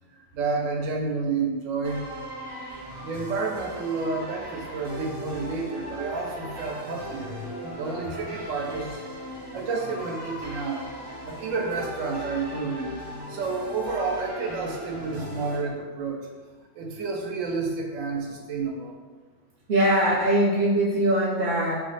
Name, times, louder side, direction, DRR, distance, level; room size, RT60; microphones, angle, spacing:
voice 1, 0.3-2.1 3.0-9.0 9.5-10.8 11.2-12.9 13.3-16.2 16.7-19.0, right 4 dB, 80° right, 1 dB, 1.0 m, -30 dB
sound 1, 1.8-15.6, equal, 25° right, 0.8 m, -38 dB
voice 2, 19.7-21.8, right 1 dB, 55° right, -8 dB, 0.8 m, -21 dB
2.6 x 2.1 x 3.9 m, 1.4 s
omnidirectional pair, 1.3 m